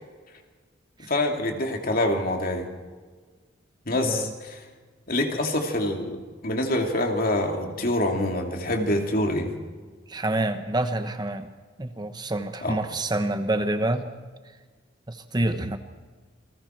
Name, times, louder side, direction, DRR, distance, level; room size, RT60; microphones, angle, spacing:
voice 1, 1.1-2.7 3.9-4.6 5.1-6.2 6.4-9.5 12.6-12.8, left 1 dB, 50° left, 3 dB, 2.6 m, -25 dB
voice 2, 3.9-4.3 10.1-11.5 11.8-14.1 15.1-15.8, right 1 dB, 20° right, 8 dB, 1.0 m, -27 dB
28.0 x 20.5 x 4.5 m, 1.5 s
head